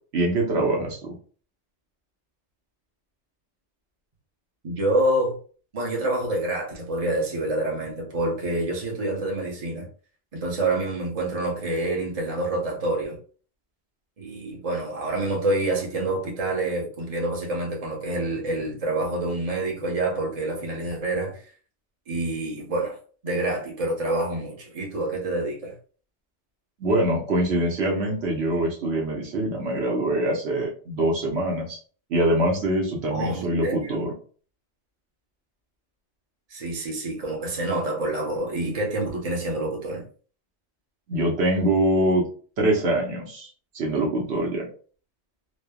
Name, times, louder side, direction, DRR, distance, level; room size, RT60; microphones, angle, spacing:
voice 1, 0.1-1.1 26.8-31.8 32.1-34.1 41.1-42.2 42.6-43.5 43.7-44.7, right 1 dB, 70° right, -1 dB, 1.0 m, -24 dB
voice 2, 4.6-5.3 5.7-9.9 10.3-13.2 14.2-21.4 22.1-23.0 23.2-25.7 33.1-34.1 36.5-40.0, right 2 dB, 35° right, -2 dB, 0.9 m, -27 dB
3.1 x 2.1 x 2.2 m, 0.41 s
omnidirectional pair, 1.2 m